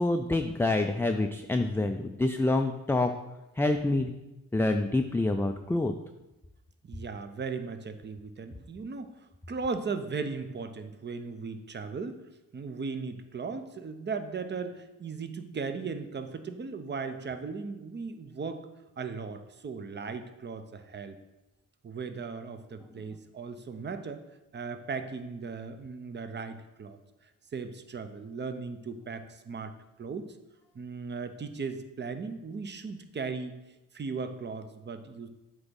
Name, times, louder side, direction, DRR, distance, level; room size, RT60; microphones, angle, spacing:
voice 1, 0.0-3.1 3.6-4.1 4.5-5.9, left 2 dB, 5° left, 5 dB, 0.4 m, -27 dB
voice 2, 6.8-9.1 9.5-12.2 12.5-18.7 19.0-21.2 21.8-24.2 24.5-27.0 27.5-29.7 30.0-30.3 30.7-33.6 33.9-35.3, right 4 dB, 35° right, 9 dB, 0.7 m, -37 dB
7.9 x 3.0 x 5.3 m, 0.99 s
supercardioid pair, 60°, 32 cm